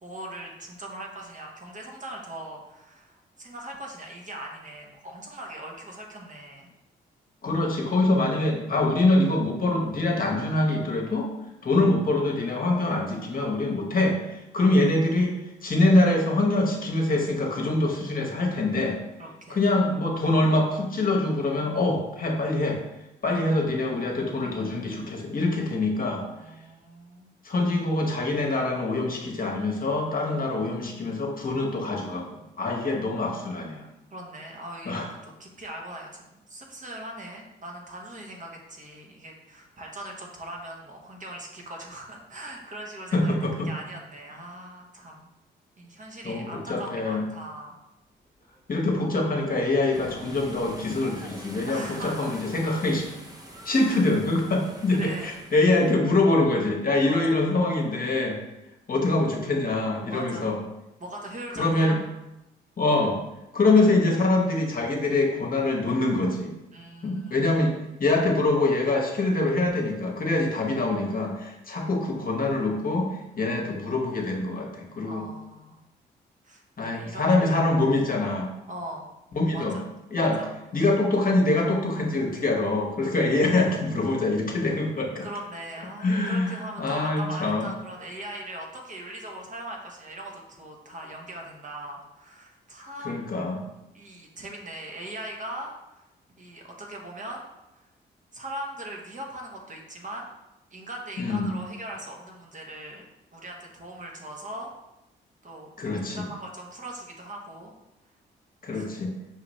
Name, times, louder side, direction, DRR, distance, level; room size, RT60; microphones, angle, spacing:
voice 1, 0.0-6.7 19.2-19.8 23.3-23.4 26.3-27.3 34.1-43.3 43.6-45.3 45.8-47.8 51.7-52.3 53.9-54.1 55.0-55.3 57.1-57.4 60.1-60.5 61.0-62.0 66.7-67.4 75.0-75.8 76.4-77.6 78.7-79.1 79.5-79.9 80.2-80.5 85.2-93.4 93.9-96.0 96.4-97.5 97.7-97.9 98.3-100.3 100.7-103.0 103.3-104.7 105.4-105.7 106.2-107.7 108.7-108.9, right 1 dB, 40° right, 0 dB, 1.0 m, -40 dB
voice 2, 7.4-11.3 11.6-19.0 19.5-22.8 23.2-26.2 27.4-33.8 34.9-35.1 43.1-43.7 46.2-47.2 48.7-53.1 53.6-58.4 58.9-60.6 61.5-62.0 62.8-63.2 63.5-66.5 67.0-75.2 76.8-78.5 79.3-79.8 80.1-80.4 80.7-85.2 86.0-87.7 93.0-93.6 101.2-101.5 105.8-106.2 108.6-109.1, left 2 dB, 45° left, 0 dB, 1.0 m, -24 dB
sound 1, 48.3-55.9, right 1 dB, 20° right, 0.8 m, -45 dB
5.7 x 2.5 x 3.1 m, 0.95 s
supercardioid pair, 50°, 20 cm